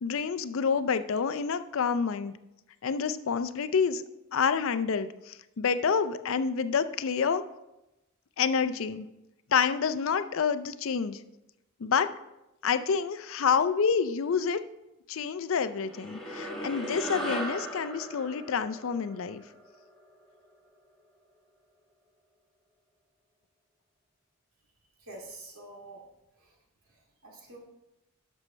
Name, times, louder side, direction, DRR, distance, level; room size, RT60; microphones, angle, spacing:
voice 1, 0.0-2.3 2.8-4.0 4.3-7.4 8.4-9.1 9.5-11.2 11.8-12.1 12.6-14.6 15.1-19.4, left 6 dB, 65° left, 12 dB, 0.4 m, -28 dB
sound 1, 15.8-20.4, right 1 dB, 5° left, 1.5 m, -38 dB
voice 2, 25.0-26.0 26.4-26.6 26.9-27.6, right 2 dB, 80° right, -2 dB, 2.4 m, -47 dB
11.5 x 6.4 x 3.2 m, 0.94 s
head